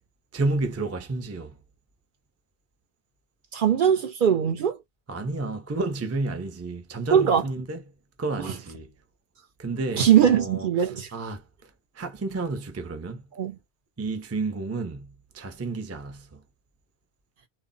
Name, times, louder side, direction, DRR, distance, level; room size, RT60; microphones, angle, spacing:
voice 1, 0.3-1.6 5.1-7.8 8.2-8.9 9.6-10.7 11.1-11.4 12.0-13.2 14.0-15.1 15.3-16.4, right 2 dB, 25° right, 0.3 m, -31 dB
voice 2, 3.5-4.8 7.1-7.4 8.4-8.5 9.9-11.1 13.4-13.6, right 9 dB, 55° right, 0.7 m, -21 dB
2.1 x 2.0 x 3.7 m
omnidirectional pair, 1.1 m